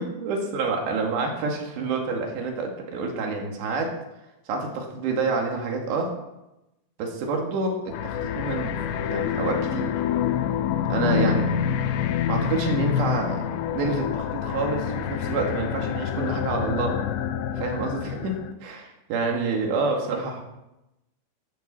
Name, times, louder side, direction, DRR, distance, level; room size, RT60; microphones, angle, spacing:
voice 1, 0.0-4.0 4.5-6.1 7.0-9.9 10.9-11.8 12.3-13.5 13.7-17.0 17.6-18.3 18.6-20.4, right 3 dB, 70° right, 1 dB, 4.1 m, -28 dB
sound 1, 7.9-18.5, left 9 dB, 85° left, 2.9 m, -27 dB
13.0 x 12.5 x 4.3 m, 0.93 s
omnidirectional pair, 5.2 m